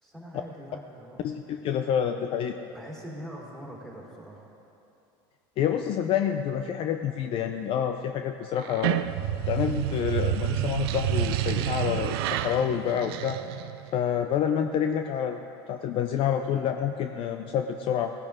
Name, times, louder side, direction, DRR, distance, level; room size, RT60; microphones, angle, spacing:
voice 1, 0.0-1.3 2.7-4.5, equal, 5° left, -4 dB, 3.5 m, -42 dB
voice 2, 1.2-2.6 5.6-9.0 9.5-13.4 13.9-15.4 15.7-18.1, left 9 dB, 45° left, 6 dB, 0.6 m, -28 dB
sound 1, 8.6-13.9, right 12 dB, 85° right, 0.5 m, -29 dB
18.5 x 10.5 x 3.6 m, 2.8 s
supercardioid pair, 120°, 12 cm